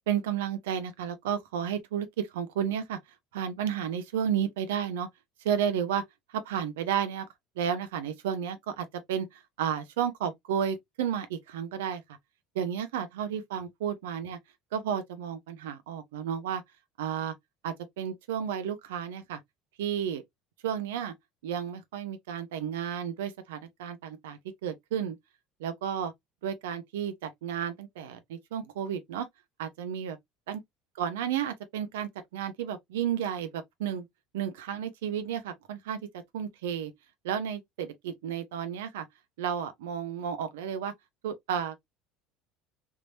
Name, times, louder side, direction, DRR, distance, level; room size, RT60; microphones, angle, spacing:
voice 1, 0.1-3.0 3.3-5.1 5.4-6.0 6.3-7.3 7.6-12.0 12.5-14.4 14.7-16.6 17.0-17.3 17.6-19.4 19.8-20.2 20.6-21.1 21.4-25.2 25.6-26.1 26.4-29.3 29.6-30.2 30.5-30.6 31.0-34.1 34.3-36.0 36.3-36.9 37.2-39.1 39.4-40.9 41.2-41.8, right 8 dB, 80° right, 0.7 m, -32 dB
3.6 x 3.0 x 2.5 m
hypercardioid pair, 75°, 0 cm